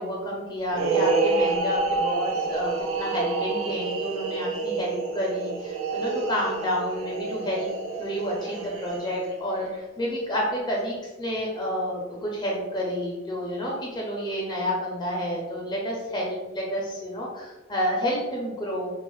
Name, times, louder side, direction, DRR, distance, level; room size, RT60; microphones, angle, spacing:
voice 1, 0.0-7.7 8.0-18.9, equal, 20° left, -3 dB, 0.4 m, -30 dB
sound 1, 0.7-9.3, right 3 dB, 80° right, 0.4 m, -28 dB
2.4 x 2.3 x 3.1 m, 1.1 s
head